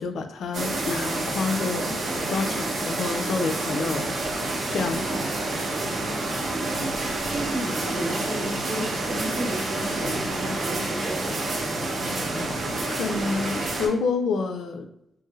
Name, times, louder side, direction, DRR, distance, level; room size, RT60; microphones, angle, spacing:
voice 1, 0.0-1.9 2.3-4.4 4.7-5.3 12.9-14.8, left 4 dB, 80° left, 7 dB, 0.4 m, -28 dB
sound 1, 0.5-13.9, right 2 dB, 55° right, 0.7 m, -28 dB
sound 2, 0.8-1.3 1.9-2.7 3.5-4.3 5.0-5.7 6.4-7.0 7.7-8.3 9.1-9.7 10.4-11.0 11.7-12.4 13.0-13.7, right 1 dB, 5° left, 0.5 m, -43 dB
voice 2, 5.9-6.4 6.7-6.9 7.2-11.4, right 1 dB, 90° right, -6 dB, 1.2 m, -33 dB
3.1 x 2.6 x 2.3 m, 0.81 s
wide cardioid pair, 130°, 0 cm